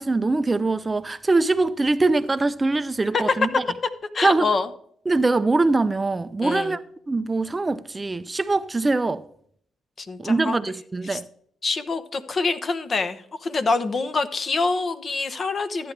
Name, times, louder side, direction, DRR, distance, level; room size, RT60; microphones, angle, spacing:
voice 1, 0.0-3.5 4.2-4.5 5.1-6.8 7.1-9.2 10.2-11.2, right 3 dB, 20° right, 0.4 m, -22 dB
voice 2, 3.1-4.7 6.4-6.7 10.0-10.6 11.1-11.2 11.6-15.9, left 3 dB, 40° left, 0.9 m, -25 dB
13.5 x 9.4 x 3.3 m
cardioid pair, 90°, 0 cm